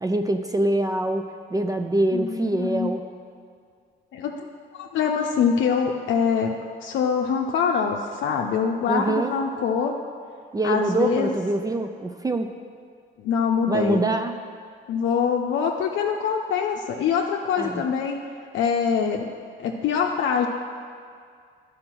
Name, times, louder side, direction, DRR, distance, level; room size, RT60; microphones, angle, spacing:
voice 1, 0.0-3.1 8.9-9.3 10.5-12.5 13.7-14.4 17.6-17.8, right 2 dB, 20° right, 6 dB, 0.4 m, -24 dB
voice 2, 2.1-2.9 4.1-4.5 4.7-10.0 10.6-11.4 13.2-14.1 14.9-18.2 18.5-19.3 19.6-20.5, left 6 dB, 75° left, 1 dB, 0.6 m, -24 dB
10.5 x 5.0 x 6.1 m, 2.2 s
cardioid pair, 90°, 20 cm